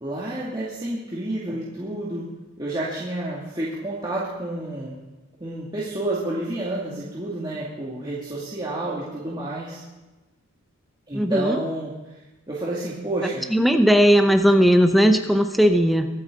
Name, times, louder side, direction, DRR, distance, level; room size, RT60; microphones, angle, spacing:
voice 1, 0.0-2.3 2.6-5.0 5.4-9.8 11.1-11.9 12.5-13.4, right 1 dB, 20° right, -8 dB, 2.3 m, -29 dB
voice 2, 11.1-11.6 13.2-16.1, equal, ahead, 6 dB, 0.7 m, -18 dB
23.0 x 8.7 x 3.8 m, 1.1 s
head